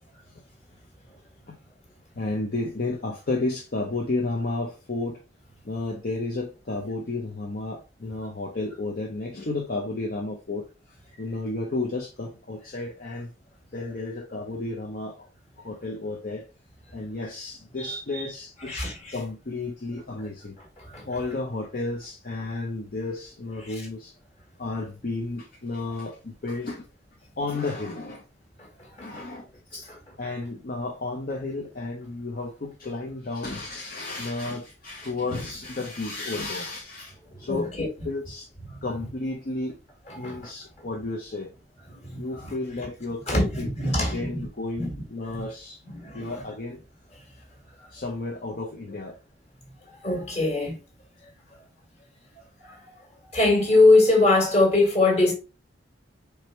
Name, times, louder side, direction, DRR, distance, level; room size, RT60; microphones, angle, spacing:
voice 1, 2.1-5.2 5.6-10.7 11.2-13.3 13.7-15.3 15.6-16.5 16.9-20.6 21.1-24.1 24.6-26.9 27.4-28.2 29.0-29.9 30.2-38.5 38.8-39.8 40.1-41.5 42.1-45.8 46.1-46.8 47.9-49.2 51.2-51.3, left 2 dB, 50° left, 0.7 m, -32 dB
voice 2, 17.8-18.3 18.7-19.2 20.8-21.1 23.6-23.7 28.6-29.3 29.9-30.0 37.3-37.9 38.7-38.8 40.1-40.5 40.8-40.9 41.9-42.5 43.3-44.5 44.8-45.0 45.3-45.4 45.9-46.3 47.8-47.9 50.0-50.8 52.6-52.9 53.3-55.3, left 2 dB, 35° left, 1.8 m, -23 dB
4.8 x 3.4 x 3.1 m
head